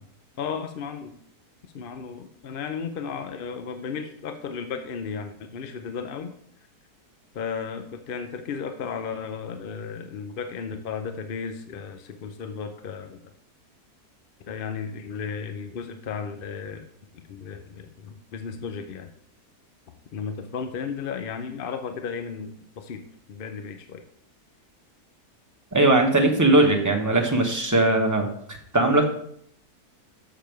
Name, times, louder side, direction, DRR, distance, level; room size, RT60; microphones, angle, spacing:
voice 1, 0.4-1.2 1.7-6.3 7.3-13.2 14.5-16.9 17.3-19.1 20.1-24.0, left 6 dB, 55° left, 7 dB, 0.6 m, -34 dB
voice 2, 25.7-28.3 28.7-29.0, right 2 dB, 15° right, 2 dB, 0.9 m, -19 dB
7.0 x 6.9 x 4.6 m, 0.68 s
omnidirectional pair, 1.6 m